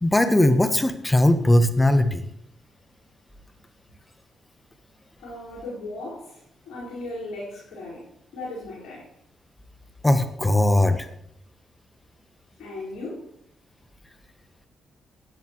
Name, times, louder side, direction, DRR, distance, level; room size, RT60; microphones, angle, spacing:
voice 1, 0.0-2.2 10.0-11.1, left 1 dB, 20° left, 9 dB, 1.3 m, -19 dB
voice 2, 5.2-9.1 12.6-13.3, left 2 dB, 65° left, -9 dB, 5.2 m, -37 dB
17.0 x 9.4 x 3.2 m, 0.70 s
hypercardioid pair, 40°, 0 cm